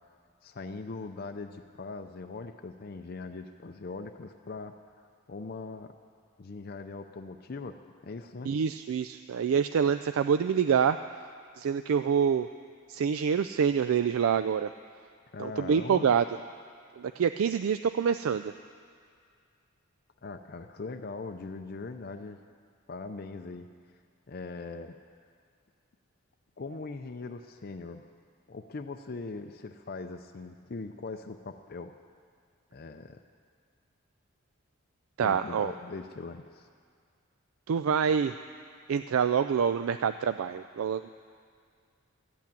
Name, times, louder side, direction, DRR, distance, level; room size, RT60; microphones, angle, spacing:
voice 1, 0.4-4.8 5.3-5.9 6.4-8.5 15.3-16.1 20.2-22.4 22.9-23.7 24.3-25.0 26.6-28.1 28.5-31.9 32.7-33.2 35.2-36.7, left 3 dB, 45° left, 6 dB, 0.5 m, -41 dB
voice 2, 8.5-11.0 11.6-12.5 12.9-14.7 15.4-16.2 17.0-18.5 35.2-35.7 37.7-38.3 38.9-41.1, right 7 dB, 75° right, 10 dB, 0.3 m, -26 dB
13.0 x 8.4 x 8.9 m, 2.1 s
head